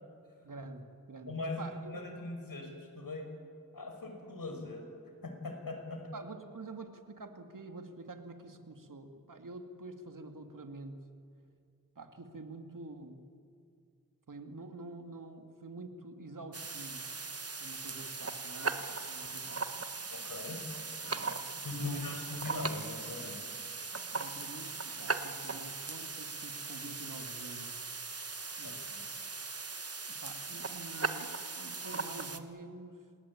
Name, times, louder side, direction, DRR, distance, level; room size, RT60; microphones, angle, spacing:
voice 1, 0.4-1.9 6.1-11.0 12.0-13.2 14.3-17.1 17.6-19.8 21.0-22.2 24.1-27.8 28.6-28.8 30.1-33.1, right 2 dB, 65° right, 6 dB, 2.5 m, -47 dB
voice 2, 1.3-3.3 3.7-4.9 5.2-6.1 20.1-20.6 21.6-23.4 28.6-29.0, left 2 dB, 75° left, 4 dB, 5.6 m, -40 dB
sound 1, 16.5-32.4, right 4 dB, 45° right, 1.5 m, -39 dB
27.5 x 20.0 x 8.7 m, 2.3 s
cardioid pair, 45°, 34 cm